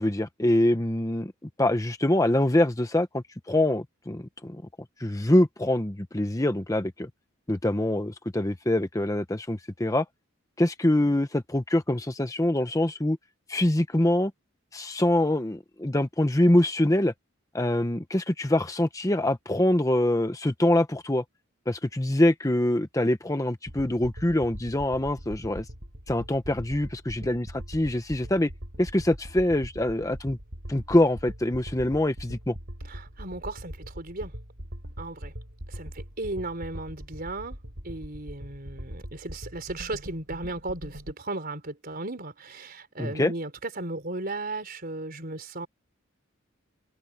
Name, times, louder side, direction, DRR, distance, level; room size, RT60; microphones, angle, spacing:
voice 1, 0.0-1.3 1.6-4.6 5.0-7.1 7.5-10.0 10.6-13.2 13.5-14.3 14.7-17.1 17.5-21.2 21.7-25.6 26.1-28.5 28.8-30.4 30.7-32.5 43.0-43.3, left 1 dB, 15° left, 0.9 m, -24 dB
sound 1, 23.7-41.1, equal, 70° right, 7.1 m, -41 dB
voice 2, 32.8-34.3 35.0-35.3 35.7-37.6 37.8-45.7, right 2 dB, 45° right, 4.3 m, -36 dB
head